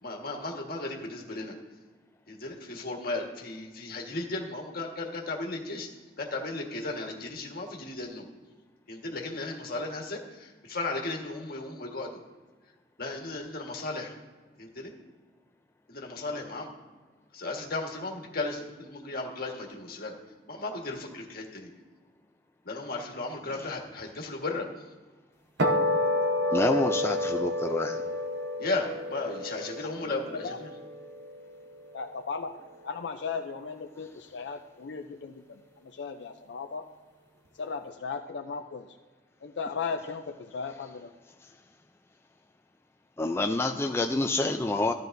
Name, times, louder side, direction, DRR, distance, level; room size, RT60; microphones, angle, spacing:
voice 1, 0.0-1.5 2.3-5.9 6.2-8.3 8.9-12.2 13.0-14.1 14.6-14.9 15.9-16.7 17.3-20.2 20.5-21.7 22.6-24.8 26.5-26.6 28.6-30.7, left 2 dB, 60° left, 1 dB, 1.5 m, -35 dB
sound 1, 25.6-32.1, left 1 dB, 80° right, 0.9 m, -30 dB
voice 2, 26.5-28.0 43.2-44.9, left 2 dB, 15° left, 4 dB, 0.4 m, -27 dB
voice 3, 31.9-32.6 32.8-36.8 37.6-39.0 39.4-41.1, left 5 dB, 80° left, 6 dB, 0.5 m, -36 dB
13.5 x 9.2 x 2.6 m, 1.3 s
head